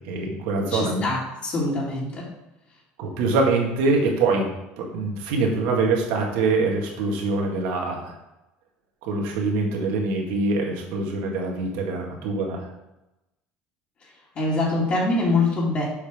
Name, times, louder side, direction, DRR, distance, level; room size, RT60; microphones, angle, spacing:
voice 1, 0.0-1.0 3.0-4.5 4.8-8.2 9.0-12.7, right 3 dB, 85° right, 0 dB, 2.0 m, -24 dB
voice 2, 0.7-2.3 14.3-15.8, left 2 dB, 40° left, -6 dB, 2.4 m, -24 dB
7.1 x 5.4 x 5.0 m, 0.95 s
cardioid pair, 140°, 4 cm